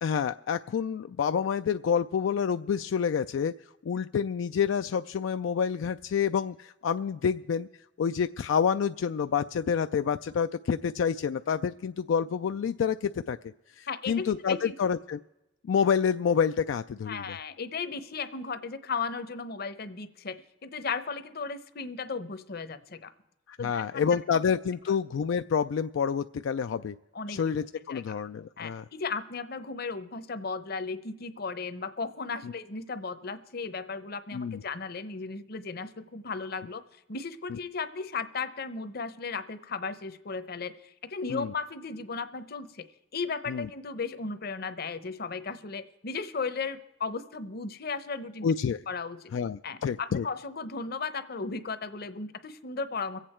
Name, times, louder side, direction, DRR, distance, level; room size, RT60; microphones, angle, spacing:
voice 1, 0.0-3.5 3.8-7.7 8.0-13.4 13.8-15.2 15.7-17.4 23.5-26.9 27.3-28.8 32.4-32.5 34.3-34.6 41.3-41.5 43.5-43.7 48.4-48.8 49.3-50.3, left 7 dB, 80° left, 9 dB, 0.3 m, -28 dB
voice 2, 13.9-14.7 17.1-20.4 20.6-23.1 23.6-24.0 27.1-27.4 27.9-28.2 28.6-36.8 37.1-40.8 41.0-42.8 43.1-48.5 48.9-49.3 49.6-53.2, left 4 dB, 55° left, 12 dB, 0.8 m, -35 dB
23.5 x 8.4 x 4.4 m, 0.96 s
head